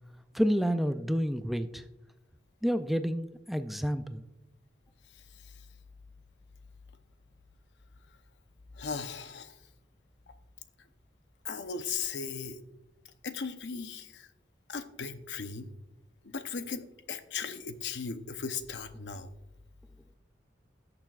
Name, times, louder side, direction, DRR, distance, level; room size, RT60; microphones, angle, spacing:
voice 1, 0.3-1.9 2.6-4.2, equal, ahead, 9 dB, 0.3 m, -29 dB
voice 2, 5.1-5.6 8.7-9.6 11.4-12.6 13.2-14.3 14.7-15.7 16.2-19.3, left 5 dB, 70° left, 9 dB, 0.7 m, -37 dB
17.5 x 6.8 x 2.4 m, 0.93 s
head